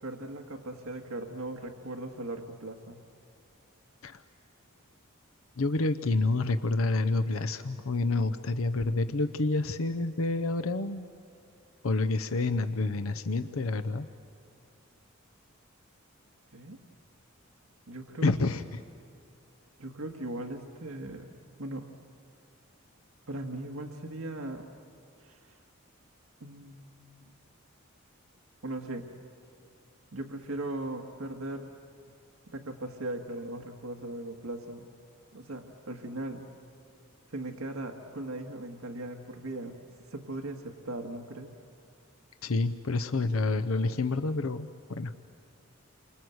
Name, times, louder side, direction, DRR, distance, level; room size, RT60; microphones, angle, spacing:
voice 1, 0.0-3.0 16.5-16.8 17.9-18.3 19.8-21.3 21.6-21.9 23.3-24.7 25.2-25.6 26.4-27.2 28.6-29.1 30.1-31.7 32.5-34.9 35.3-36.4 37.3-39.8 40.1-41.5, right 1 dB, 80° right, 3 dB, 1.7 m, -38 dB
voice 2, 5.6-11.1 11.8-14.1 18.2-18.8 42.4-45.1, left 3 dB, 80° left, 10 dB, 0.8 m, -28 dB
29.0 x 25.5 x 8.0 m, 2.4 s
head